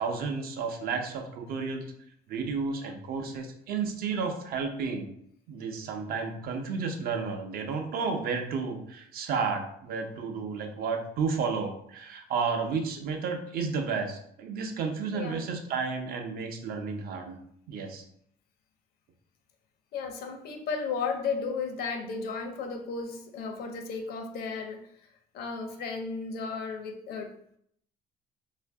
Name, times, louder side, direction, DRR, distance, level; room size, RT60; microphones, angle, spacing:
voice 1, 0.0-1.9 2.3-5.1 5.5-17.4 17.7-18.0, right 5 dB, 60° right, 4 dB, 0.6 m, -32 dB
voice 2, 15.1-15.5 19.9-24.8 25.3-27.3, left 5 dB, 70° left, 5 dB, 0.6 m, -34 dB
2.7 x 2.5 x 3.4 m, 0.70 s
cardioid pair, 110°, 17 cm